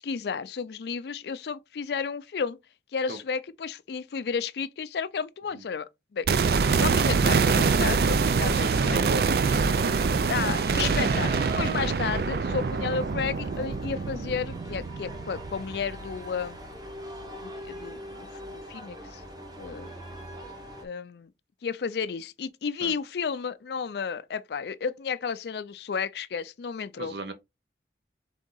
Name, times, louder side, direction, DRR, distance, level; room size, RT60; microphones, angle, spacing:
voice 1, 0.0-2.6 2.9-6.3 6.6-9.0 10.3-11.3 11.6-16.6 17.4-19.2 19.6-19.9 20.8-21.3 21.6-27.1, left 6 dB, 70° left, 0.4 m, -32 dB
sound 1, 6.3-16.3 16.6-16.7, right 5 dB, 60° right, 0.3 m, -25 dB
sound 2, 8.2-20.8, equal, 20° right, 0.9 m, -42 dB
voice 2, 8.5-10.1 22.8-22.9 27.0-27.3, right 2 dB, 75° right, 0.9 m, -37 dB
3.7 x 3.6 x 3.8 m
head